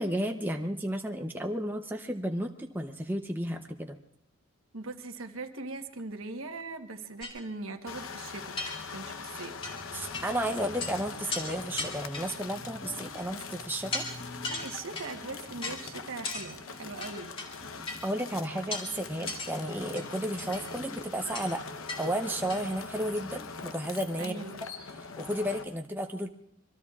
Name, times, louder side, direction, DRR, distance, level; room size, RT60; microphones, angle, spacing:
voice 1, 0.0-4.0 9.9-14.0 18.0-21.6 22.0-24.4 25.2-26.3, right 1 dB, 10° right, 3 dB, 0.7 m, -33 dB
voice 2, 4.7-8.6 8.9-9.6 14.5-17.3 24.2-24.6, right 3 dB, 70° right, 6 dB, 1.2 m, -40 dB
sound 1, 7.2-7.4 8.0-8.1 8.6-9.2 9.6-9.8 10.1-10.3 10.6-10.9 11.3-11.5 11.8-12.5 13.1-13.4 13.9-14.1 14.4-15.1 15.6-15.8 16.3-16.5 17.0-17.5 17.9-18.0 18.7-18.9 19.3-19.5 20.0-20.7 21.3-21.5 21.9-22.0 22.3-22.6, left 2 dB, 25° left, 2.6 m, -36 dB
sound 2, 7.9-25.6, left 5 dB, 75° left, 0.9 m, -42 dB
sound 3, 8.4-21.0, left 1 dB, 40° left, 2.2 m, -50 dB
25.5 x 23.0 x 2.4 m, 0.76 s
head